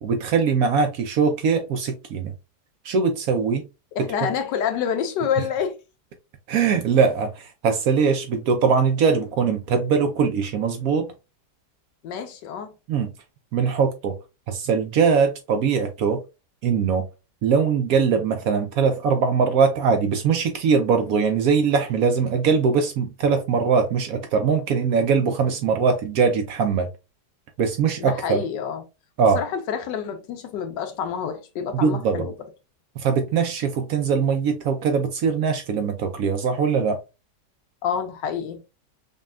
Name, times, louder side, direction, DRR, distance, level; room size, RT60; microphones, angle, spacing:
voice 1, 0.0-2.3 2.8-3.7 6.5-11.1 12.9-13.1 13.5-14.2 14.5-16.2 16.6-17.1 17.4-26.9 27.6-28.4 29.2-29.4 31.7-32.3 33.0-37.0, right 5 dB, 70° right, 0.9 m, -21 dB
voice 2, 3.9-5.8 12.0-12.7 28.0-28.8 29.3-32.3 37.8-38.6, left 7 dB, 90° left, 1.4 m, -27 dB
5.2 x 2.3 x 2.4 m
omnidirectional pair, 1.9 m